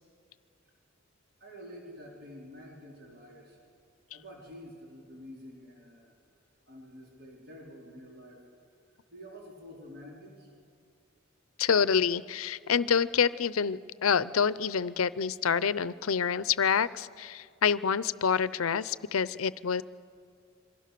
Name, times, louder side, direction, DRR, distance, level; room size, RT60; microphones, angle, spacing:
voice 1, 1.4-3.6 4.1-6.1 6.7-8.4 9.1-10.5, equal, 50° right, -2 dB, 4.2 m, -48 dB
voice 2, 11.6-19.8, left 6 dB, 80° left, 17 dB, 0.6 m, -27 dB
26.5 x 23.0 x 6.8 m, 2.3 s
head